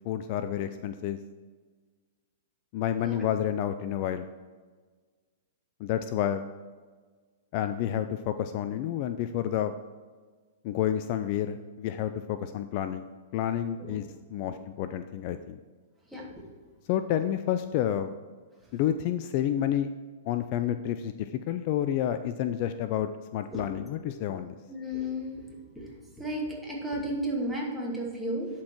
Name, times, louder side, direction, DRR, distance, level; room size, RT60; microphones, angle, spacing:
voice 1, 0.0-1.2 2.7-4.3 5.8-6.4 7.5-9.7 10.6-13.1 13.3-14.1 14.3-15.6 16.9-18.1 18.7-19.9 20.3-24.5, left 10 dB, 45° left, 10 dB, 0.4 m, -29 dB
voice 2, 16.1-16.5 23.5-23.6 24.7-25.4 25.8-25.9 26.2-28.5, equal, 5° right, -4 dB, 2.2 m, -33 dB
11.0 x 4.5 x 4.5 m, 1.4 s
hypercardioid pair, 115°, 0 cm